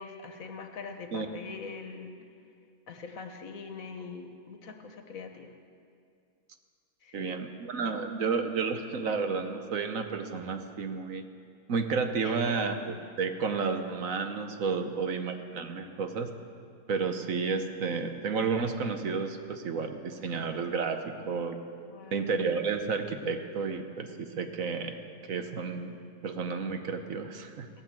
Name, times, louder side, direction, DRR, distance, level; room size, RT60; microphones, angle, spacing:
voice 1, 0.0-2.2 2.9-5.5 7.0-7.4 12.2-12.7 14.8-15.2 21.0-21.4 21.9-22.3 27.7-27.8, left 4 dB, 65° left, 5 dB, 1.5 m, -43 dB
voice 2, 7.1-11.3 11.7-16.3 16.9-21.6 22.1-25.0 25.3-25.9 26.2-27.8, right 5 dB, 65° right, 7 dB, 1.3 m, -31 dB
17.0 x 9.5 x 7.6 m, 2.3 s
omnidirectional pair, 1.6 m